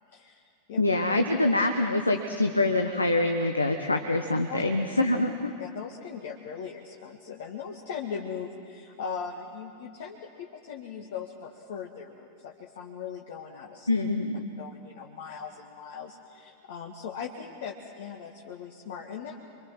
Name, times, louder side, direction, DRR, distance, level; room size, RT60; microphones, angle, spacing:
voice 1, 0.1-0.8 4.5-4.6 5.6-13.9 14.6-19.4, left 6 dB, 55° left, 1 dB, 1.7 m, -39 dB
voice 2, 0.8-5.5 13.9-14.5, left 2 dB, 80° left, 5 dB, 1.1 m, -25 dB
27.0 x 24.5 x 6.1 m, 2.5 s
figure-of-eight pair, 90°, 0 cm